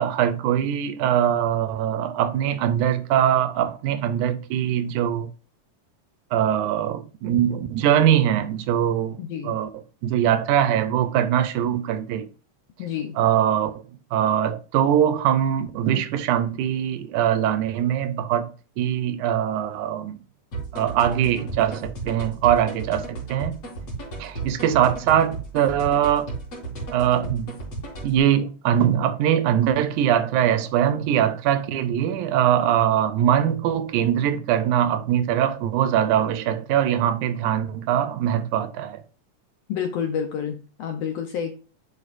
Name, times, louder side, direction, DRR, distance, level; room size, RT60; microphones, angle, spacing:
voice 1, 0.0-5.3 6.3-9.2 9.4-9.7 10.0-12.3 13.2-13.7 14.1-20.2 20.7-23.5 24.2-26.3 26.9-27.6 28.0-39.0, right 10 dB, 75° right, 2.0 m, -22 dB
voice 2, 9.2-9.6 12.8-13.2 39.7-41.5, left 8 dB, 80° left, 1.4 m, -29 dB
sound 1, 20.5-28.2, right 3 dB, 45° left, 4.5 m, -34 dB
11.0 x 4.9 x 2.5 m
omnidirectional pair, 3.8 m